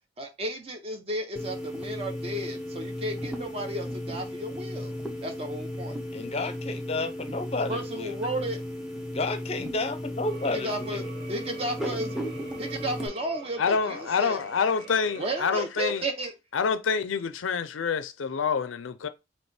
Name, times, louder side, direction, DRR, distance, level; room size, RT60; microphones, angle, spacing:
voice 1, 0.2-6.0 7.7-8.6 10.5-11.0 11.3-12.2 12.6-14.4 15.1-16.3, right 1 dB, 30° right, 0.9 m, -33 dB
sound 1, 1.4-13.1, left 1 dB, 5° right, 0.7 m, -35 dB
voice 2, 6.1-8.1 9.1-11.1, left 2 dB, 30° left, 0.6 m, -31 dB
sound 2, 10.3-15.6, right 6 dB, 55° right, 1.2 m, -46 dB
voice 3, 13.6-16.0 16.5-19.1, left 6 dB, 90° left, 0.5 m, -27 dB
3.3 x 2.9 x 4.3 m
head